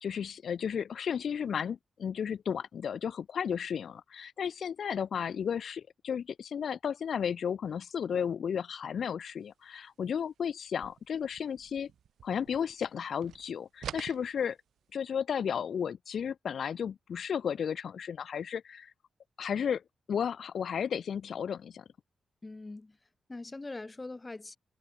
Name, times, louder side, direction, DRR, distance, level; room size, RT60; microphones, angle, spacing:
voice 1, 0.0-11.9 12.2-14.6 14.9-18.9 19.4-19.8 20.1-21.8, left 7 dB, 70° left, 0.3 m, -33 dB
sound 1, 10.7-13.0 13.2-15.0, right 9 dB, 75° right, 0.4 m, -46 dB
voice 2, 22.4-23.0 23.3-24.6, left 2 dB, 30° left, 0.7 m, -42 dB
supercardioid pair, 45°, 0 cm